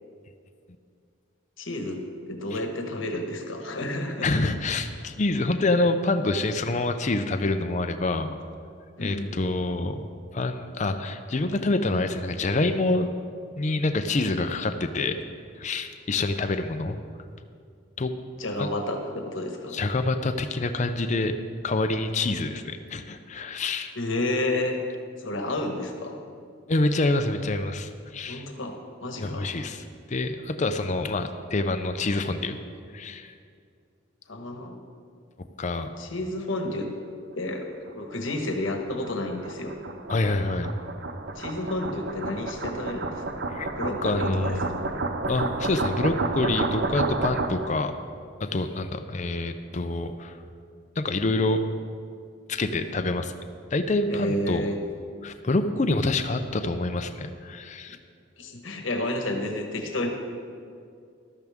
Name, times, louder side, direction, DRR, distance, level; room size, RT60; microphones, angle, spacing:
voice 1, 1.6-2.0 2.3-4.3 9.0-9.3 18.4-19.7 23.9-24.8 25.2-26.2 28.3-29.5 34.3-34.8 36.0-36.9 37.3-39.7 41.4-43.2 43.8-44.8 54.1-54.8 58.4-60.1, left 1 dB, 80° left, 4 dB, 1.3 m, -30 dB
voice 2, 4.2-8.4 9.0-13.1 13.6-15.2 15.6-17.0 18.0-18.1 18.6-18.7 19.7-21.3 21.6-23.9 26.7-28.4 29.2-32.6 32.9-33.3 35.6-35.9 40.1-40.7 43.5-43.7 44.0-44.8 45.3-47.9 48.4-50.4 51.0-51.6 52.5-53.3 53.7-54.6 55.2-58.0, left 2 dB, 35° left, 8 dB, 0.5 m, -26 dB
sound 1, 37.9-47.8, right 3 dB, 55° right, 0.6 m, -31 dB
14.0 x 12.5 x 3.6 m, 2.3 s
head